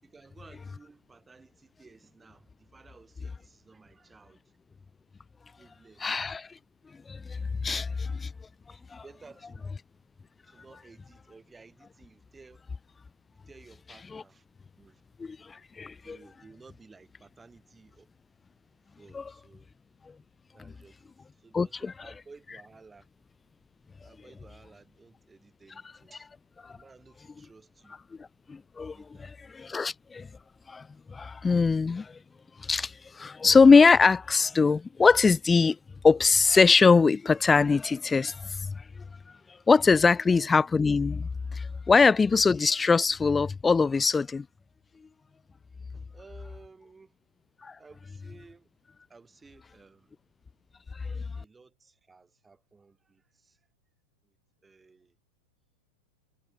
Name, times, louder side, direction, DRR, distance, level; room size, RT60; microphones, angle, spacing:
voice 1, 0.0-4.6 5.6-6.1 7.6-7.9 8.7-9.8 10.4-12.6 13.5-15.0 16.0-18.1 19.0-19.7 20.5-23.1 24.0-26.3 26.7-28.0 28.9-29.3 29.6-29.8 40.0-40.2 45.9-47.2 47.8-48.7 49.1-50.1 51.3-53.6 54.2-54.4 54.6-55.2, right 4 dB, 10° right, 6.3 m, -55 dB
voice 2, 6.0-6.5 7.1-8.3 8.9-9.0 14.1-14.2 15.2-16.2 19.1-19.2 21.5-21.9 28.5-29.0 29.5-30.3 30.7-32.2 32.6-35.8 36.0-38.8 39.7-44.5 47.6-47.8 51.0-51.2, left 4 dB, 15° left, 0.6 m, -22 dB
figure-of-eight pair, 90°, 0 cm